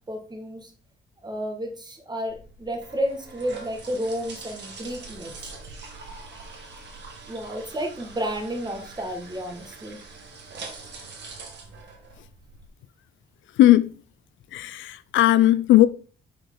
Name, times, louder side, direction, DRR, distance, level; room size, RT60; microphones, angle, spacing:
voice 1, 0.1-0.7 1.2-5.5 7.3-10.0, equal, 20° right, 1.7 m, -31 dB
sound 1, 2.3-12.7, right 3 dB, 60° right, 2.0 m, -43 dB
voice 2, 13.6-13.9 14.5-15.9, left 14 dB, 75° left, 0.4 m, -17 dB
6.1 x 4.7 x 3.8 m
cardioid pair, 90°, 20 cm